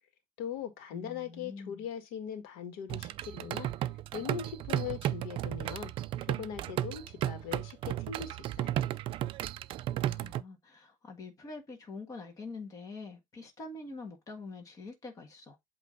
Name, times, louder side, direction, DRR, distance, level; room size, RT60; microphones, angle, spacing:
voice 1, 0.4-3.7 4.1-5.9 6.4-8.7, left 8 dB, 70° left, 1.8 m, -40 dB
voice 2, 0.9-1.9 10.0-15.6, left 3 dB, 25° left, 1.5 m, -45 dB
sound 1, 2.9-10.4, right 13 dB, 40° right, 0.3 m, -34 dB
8.1 x 3.0 x 3.9 m
cardioid pair, 170°, 14 cm